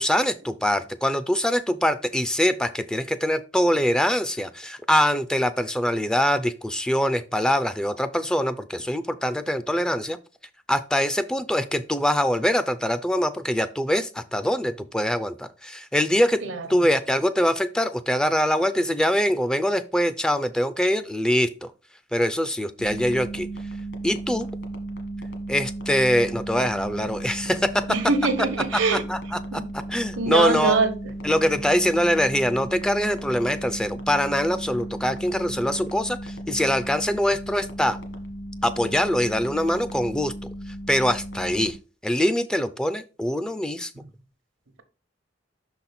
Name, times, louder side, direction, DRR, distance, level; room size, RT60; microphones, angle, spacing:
voice 1, 0.0-10.2 10.7-16.4 16.7-21.7 22.1-23.5 24.0-24.5 25.5-28.0 28.7-29.6 29.9-30.8 31.2-38.0 38.6-40.3 40.9-41.8 42.0-43.9, equal, 5° left, 0.3 m, -23 dB
voice 2, 16.4-16.9 27.9-29.0 29.5-29.7 30.2-30.9, right 4 dB, 80° right, 0.9 m, -23 dB
sound 1, 22.8-41.7, right 1 dB, 65° left, 1.4 m, -35 dB
6.1 x 4.0 x 4.2 m
head